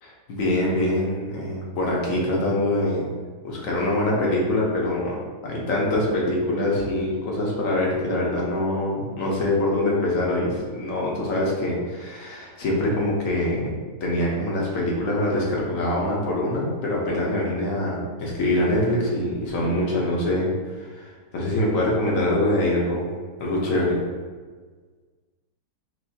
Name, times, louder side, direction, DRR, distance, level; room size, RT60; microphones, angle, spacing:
voice 1, 0.0-3.1 3.4-5.2 5.4-24.0, left 1 dB, 60° left, -3 dB, 1.3 m, -24 dB
6.3 x 2.7 x 2.8 m, 1.5 s
omnidirectional pair, 1.7 m